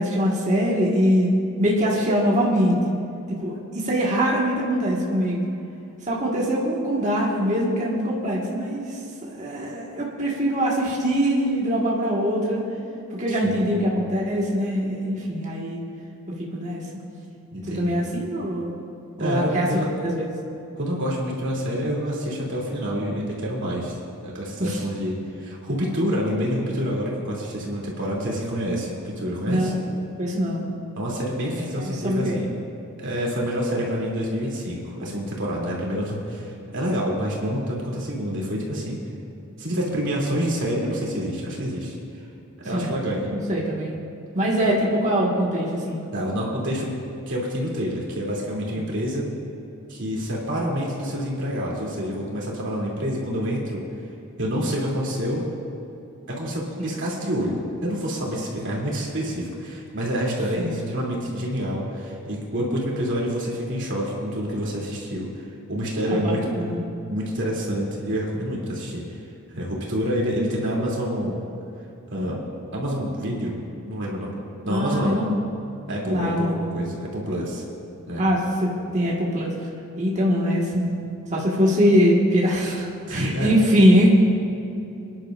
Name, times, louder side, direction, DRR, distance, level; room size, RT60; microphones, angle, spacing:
voice 1, 0.0-2.9 3.3-5.4 6.1-12.6 13.1-15.8 16.4-16.8 17.8-18.7 19.2-19.7 20.0-20.3 24.6-24.8 29.5-29.7 30.2-30.7 31.4-32.4 42.7-43.0 43.3-43.9 44.3-46.0 48.7-48.8 60.6-60.8 65.9-66.8 74.7-75.3 76.0-76.5 78.2-79.5 80.0-80.8 81.3-84.1, equal, 35° right, -4 dB, 1.7 m, -23 dB
voice 2, 13.4-13.7 17.5-18.0 19.2-19.9 20.8-24.0 24.2-29.7 30.9-32.5 33.0-39.0 39.6-41.9 42.6-43.3 44.6-44.7 46.1-49.3 49.9-53.8 54.4-55.5 56.3-65.3 65.7-66.6 67.1-69.0 69.5-71.4 72.1-72.4 72.7-73.6 73.8-75.2 75.9-77.6 78.1-78.2 83.1-83.5, equal, 55° right, -3 dB, 3.0 m, -27 dB
26.5 x 10.5 x 2.6 m, 2.8 s
head